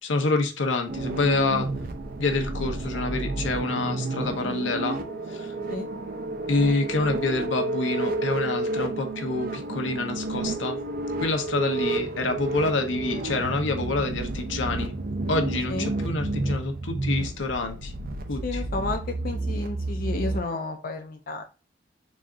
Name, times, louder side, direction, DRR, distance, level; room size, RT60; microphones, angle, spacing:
voice 1, 0.0-1.7 2.2-5.0 5.3-5.5 6.5-10.8 11.2-14.9 15.3-17.9 18.3-18.6, left 3 dB, 85° left, 4 dB, 0.8 m, -27 dB
sound 1, 0.9-20.4, right 2 dB, 50° right, 0.6 m, -31 dB
voice 2, 18.4-21.4, left 3 dB, 50° left, 5 dB, 0.4 m, -32 dB
4.1 x 2.5 x 3.5 m, 0.33 s
head